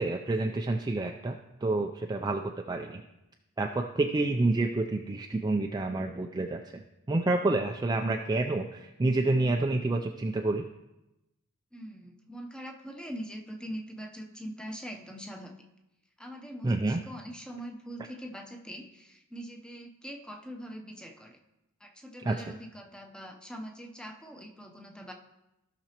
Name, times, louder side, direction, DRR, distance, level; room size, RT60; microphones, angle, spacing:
voice 1, 0.0-3.0 3.6-6.8 7.1-10.7 16.6-17.0 22.2-22.5, right 2 dB, 20° right, 3 dB, 0.3 m, -28 dB
voice 2, 11.7-15.5 16.2-21.4 21.8-25.1, equal, 5° left, 2 dB, 0.7 m, -43 dB
15.5 x 6.0 x 2.9 m, 0.95 s
head